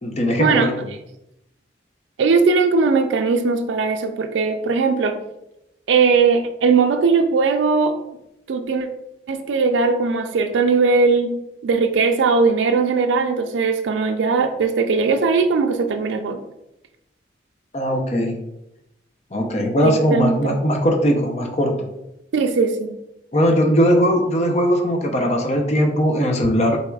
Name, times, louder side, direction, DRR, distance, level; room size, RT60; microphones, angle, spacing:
voice 1, 0.0-0.7 17.7-18.4 19.3-21.9 23.3-26.8, equal, 35° left, 2 dB, 0.6 m, -19 dB
voice 2, 2.2-5.2 5.9-8.0 8.5-8.9 9.3-11.4 11.6-16.4 19.8-20.6 22.3-22.9, right 4 dB, 80° right, 6 dB, 0.4 m, -19 dB
4.6 x 4.1 x 2.3 m, 0.87 s
head